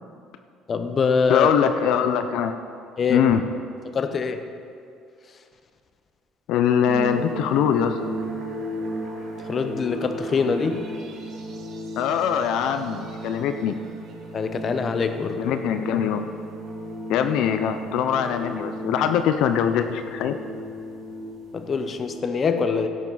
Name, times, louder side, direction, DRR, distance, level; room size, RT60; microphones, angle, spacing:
voice 1, 0.7-1.5 3.0-3.2 3.9-4.4 9.5-10.9 14.3-15.4 21.5-22.9, left 5 dB, 35° left, 8 dB, 0.7 m, -24 dB
voice 2, 1.3-2.5 3.1-3.4 6.5-8.0 12.0-13.8 15.4-16.3 17.1-20.4, left 8 dB, 70° left, 8 dB, 0.5 m, -22 dB
sound 1, 6.9-22.2, right 1 dB, 60° right, 2.3 m, -35 dB
16.5 x 7.3 x 3.9 m, 2.3 s
cardioid pair, 125°, 0 cm